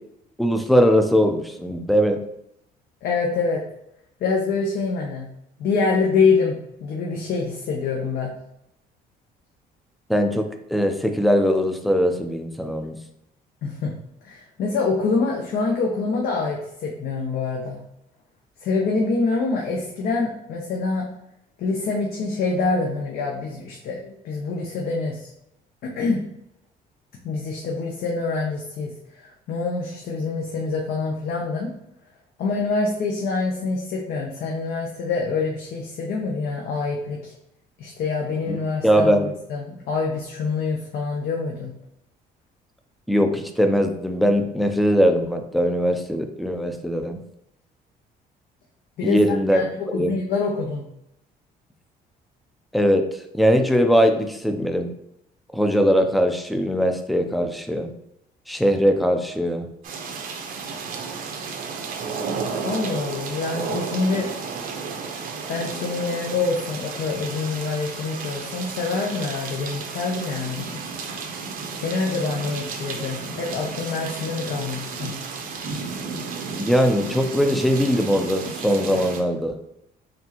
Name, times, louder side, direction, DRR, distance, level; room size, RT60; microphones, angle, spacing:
voice 1, 0.4-2.2 10.1-13.0 38.5-38.6 38.8-39.3 43.1-47.2 49.0-49.6 49.9-50.2 52.7-53.0 53.3-54.9 55.5-57.9 58.5-59.7 76.6-79.5, equal, ahead, 5 dB, 0.4 m, -20 dB
voice 2, 3.0-3.6 4.2-5.3 5.6-8.3 13.6-13.9 14.2-17.8 18.6-21.1 21.6-25.3 25.8-26.2 27.2-28.9 29.2-31.7 32.4-37.3 37.8-41.7 49.0-50.8 62.6-64.3 65.5-70.7 71.8-75.1, left 4 dB, 65° left, -1 dB, 0.7 m, -25 dB
sound 1, 59.8-79.2, right 5 dB, 55° right, 0.7 m, -33 dB
4.3 x 3.2 x 2.9 m, 0.79 s
cardioid pair, 110°, 17 cm